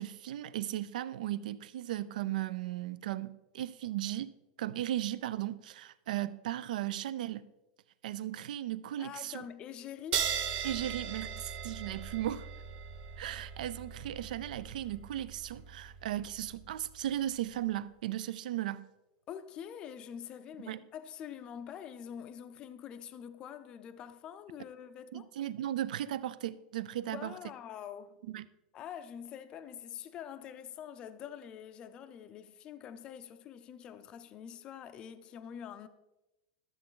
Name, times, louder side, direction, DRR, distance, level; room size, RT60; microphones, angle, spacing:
voice 1, 0.0-4.3 4.6-7.5 8.0-9.5 10.6-12.5 13.2-18.9 20.7-20.8 25.1-27.4 28.3-28.5, right 13 dB, 80° right, 0.5 m, -36 dB
voice 2, 9.0-10.3 19.3-25.3 27.0-28.2 28.7-35.9, left 9 dB, 20° left, 0.4 m, -45 dB
sound 1, 10.1-17.1, right 8 dB, 30° right, 0.7 m, -39 dB
13.0 x 7.7 x 3.8 m
supercardioid pair, 180°, 4 cm